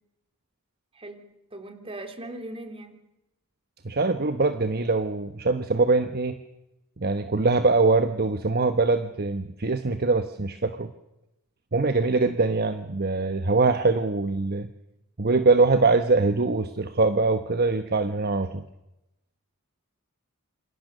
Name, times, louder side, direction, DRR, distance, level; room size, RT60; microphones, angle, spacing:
voice 1, 0.9-3.0, right 1 dB, 25° right, 7 dB, 3.3 m, -40 dB
voice 2, 3.8-6.4 7.0-10.9 11.7-14.7 15.2-18.6, right 3 dB, 45° right, 10 dB, 1.1 m, -23 dB
27.5 x 27.5 x 6.7 m, 0.92 s
head